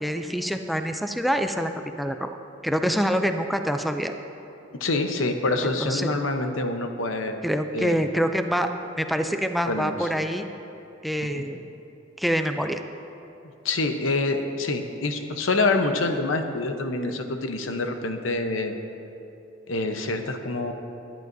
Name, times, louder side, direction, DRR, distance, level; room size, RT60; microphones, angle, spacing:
voice 1, 0.0-1.7 2.0-2.3 2.6-4.1 5.8-6.1 7.4-8.7 9.0-10.5 11.0-11.6 12.2-12.8, equal, ahead, 6 dB, 0.4 m, -25 dB
voice 2, 4.8-7.4 7.7-8.0 9.7-10.1 11.3-11.4 13.6-18.7 19.7-20.7, left 2 dB, 90° left, 5 dB, 0.9 m, -26 dB
21.0 x 11.0 x 2.7 m, 2.8 s
head